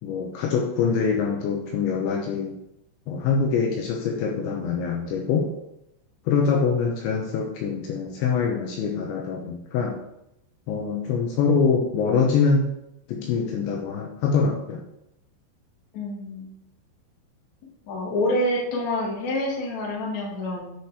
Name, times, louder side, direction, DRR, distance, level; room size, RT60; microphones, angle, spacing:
voice 1, 0.0-2.5 3.1-5.5 6.3-10.0 10.7-12.7 13.1-14.8, left 5 dB, 75° left, 0 dB, 3.1 m, -24 dB
voice 2, 15.9-16.5 17.9-20.7, left 1 dB, 50° left, -3 dB, 2.4 m, -27 dB
9.4 x 5.0 x 4.8 m, 0.83 s
omnidirectional pair, 5.7 m